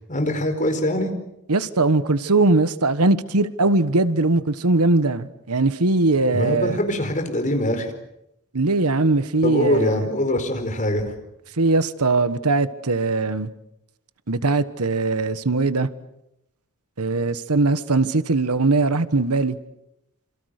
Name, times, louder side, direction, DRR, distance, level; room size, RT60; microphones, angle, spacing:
voice 1, 0.1-1.1 6.3-7.9 9.4-11.0, left 1 dB, 35° left, 4.7 m, -23 dB
voice 2, 1.5-6.8 8.5-10.0 11.6-13.5 14.3-15.9 17.0-19.6, right 3 dB, 90° right, 1.3 m, -20 dB
27.5 x 27.0 x 6.6 m
head